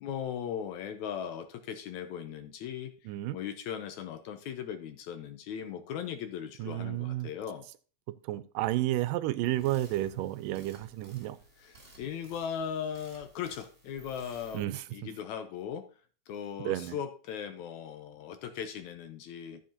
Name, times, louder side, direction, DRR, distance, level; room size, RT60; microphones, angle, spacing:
voice 1, 0.0-2.9 3.3-7.7 11.6-14.7 14.9-15.9 16.3-19.6, left 8 dB, 75° left, 1.9 m, -38 dB
voice 2, 3.1-3.4 6.6-7.3 8.2-11.4 14.5-15.1 16.7-17.0, right 15 dB, 90° right, 2.2 m, -31 dB
sound 1, 9.4-14.6, right 2 dB, 30° right, 3.6 m, -56 dB
13.0 x 7.4 x 2.8 m
omnidirectional pair, 3.8 m